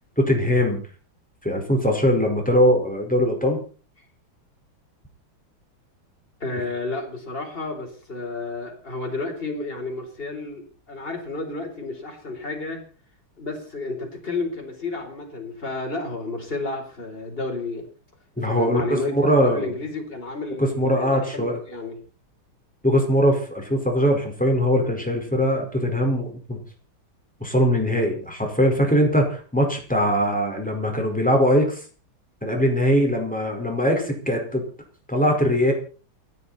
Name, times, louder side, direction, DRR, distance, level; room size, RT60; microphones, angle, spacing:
voice 1, 0.2-0.8 1.4-3.6 18.4-19.7 20.6-21.6 22.8-26.6 27.4-31.8 32.4-34.6 35.1-35.7, equal, 5° left, 2 dB, 4.9 m, -21 dB
voice 2, 6.4-12.8 13.4-17.9 18.4-19.1 19.4-22.0, left 3 dB, 25° left, 1 dB, 4.7 m, -31 dB
29.0 x 9.7 x 4.3 m, 0.38 s
omnidirectional pair, 2.3 m